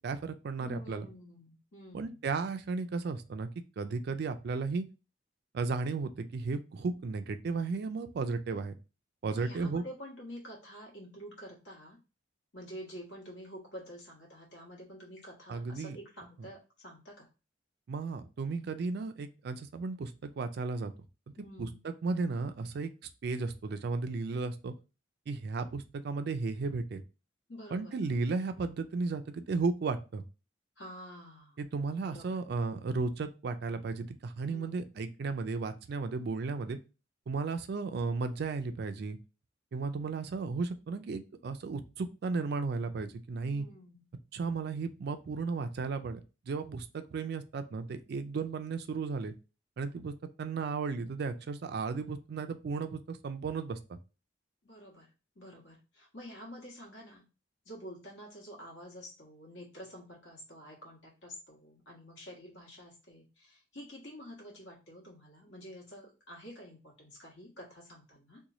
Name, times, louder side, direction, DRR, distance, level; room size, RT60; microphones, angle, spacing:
voice 1, 0.0-1.1 1.9-3.5 3.8-4.8 5.5-8.7 9.2-9.8 15.5-16.0 17.9-20.9 21.6-22.9 23.2-24.7 25.3-27.0 27.7-30.2 31.6-36.8 37.3-39.2 39.7-43.7 44.3-46.2 46.5-49.3 49.8-54.0, right 4 dB, 55° right, 10 dB, 0.4 m, -34 dB
voice 2, 0.6-2.2 9.3-12.0 12.5-17.3 21.4-21.8 27.5-27.9 30.8-31.6 32.0-32.4 34.4-34.9 43.4-44.0 54.6-57.2 57.6-68.4, equal, 65° left, -2 dB, 1.4 m, -48 dB
3.0 x 2.2 x 3.8 m, 0.31 s
head